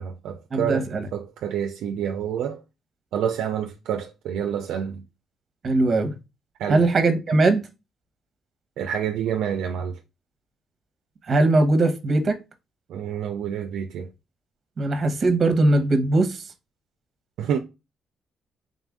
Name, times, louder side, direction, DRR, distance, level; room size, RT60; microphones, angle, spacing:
voice 1, 0.0-0.9 1.1-2.6 3.1-5.0 6.6-6.8 8.8-10.0 12.9-14.1 17.4-17.6, right 8 dB, 80° right, 0.4 m, -28 dB
voice 2, 0.5-1.0 5.6-6.1 6.7-7.6 11.3-12.4 14.8-16.4, right 2 dB, 40° right, 0.9 m, -20 dB
3.8 x 2.5 x 3.5 m
cardioid pair, 90°, 0 cm